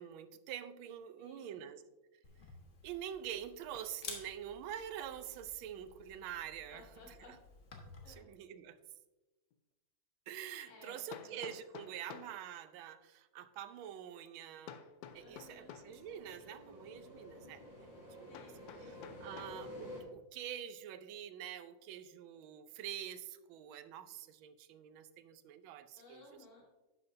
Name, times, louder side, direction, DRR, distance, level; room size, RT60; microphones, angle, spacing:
voice 1, 0.0-1.8 2.8-6.9 7.3-7.4 8.1-8.8 10.3-14.8 15.1-17.9 18.2-18.4 18.8-19.0 19.2-26.4, right 10 dB, 85° right, 13 dB, 1.4 m, -46 dB
voice 2, 1.2-1.7 6.7-7.3 8.0-8.2 10.7-11.4 15.2-15.7 18.3-19.6 26.0-26.7, left 3 dB, 90° left, -4 dB, 3.5 m, -58 dB
Camera, 2.2-8.1, left 4 dB, 40° left, 1.4 m, -53 dB
Hammer, 9.5-9.6 11.1-12.4 14.7-16.0 18.3-19.6, left 8 dB, 75° left, 1.0 m, -51 dB
sound 1, 15.0-20.0, left 1 dB, 15° left, 3.0 m, -51 dB
11.0 x 8.0 x 2.6 m, 1.1 s
omnidirectional pair, 2.2 m